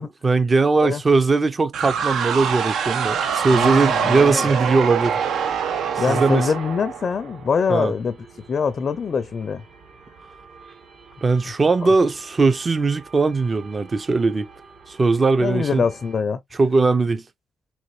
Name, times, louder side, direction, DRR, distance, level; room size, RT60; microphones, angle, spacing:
voice 1, 0.2-5.2 6.0-6.5 7.7-7.9 11.2-14.5 14.9-15.9 16.6-17.2, right 3 dB, 30° right, 0.6 m, -19 dB
sound 1, 1.7-7.5, right 7 dB, 70° right, 0.7 m, -24 dB
sound 2, 3.4-16.2, right 4 dB, 55° right, 1.4 m, -47 dB
voice 2, 3.5-4.5 6.0-8.2 8.5-9.6 15.4-16.4, left 5 dB, 45° left, 0.5 m, -24 dB
4.1 x 3.0 x 3.1 m
cardioid pair, 90°, 0 cm